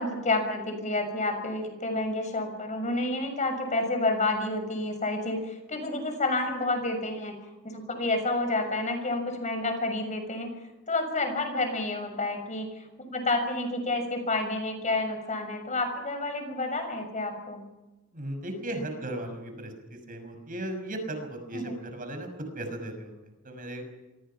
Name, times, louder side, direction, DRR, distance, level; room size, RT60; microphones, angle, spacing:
voice 1, 0.0-7.3 7.6-10.5 10.9-17.6 21.5-21.8, left 2 dB, 35° left, 6 dB, 6.5 m, -29 dB
voice 2, 18.1-23.8, right 1 dB, 40° right, 6 dB, 6.2 m, -36 dB
27.5 x 25.5 x 5.9 m, 1.0 s
head